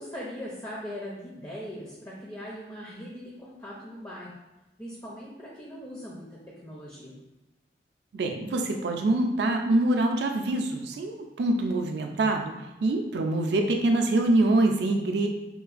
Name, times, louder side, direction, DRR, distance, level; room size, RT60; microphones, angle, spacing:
voice 1, 0.0-4.3 4.8-7.2, equal, 20° left, -4 dB, 0.4 m, -40 dB
voice 2, 8.1-12.5 12.8-15.3, right 2 dB, 65° right, 4 dB, 0.4 m, -25 dB
3.7 x 2.4 x 2.4 m, 1.0 s
head